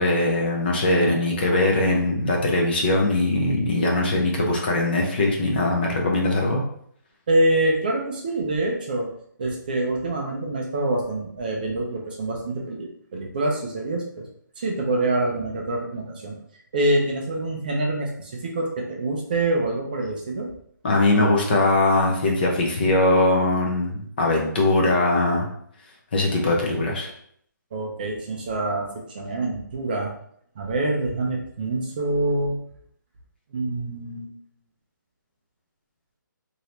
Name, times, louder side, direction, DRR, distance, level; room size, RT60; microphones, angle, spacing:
voice 1, 0.0-6.6 20.8-25.5 26.1-27.1, left 2 dB, 30° left, 0 dB, 0.6 m, -21 dB
voice 2, 7.3-9.1 9.4-14.3 14.6-16.4 16.7-20.5 27.7-28.9 29.1-30.1 30.6-32.6 33.5-34.3, right 2 dB, 25° right, 0 dB, 0.4 m, -25 dB
2.8 x 2.7 x 3.2 m, 0.66 s
hypercardioid pair, 170°, 11 cm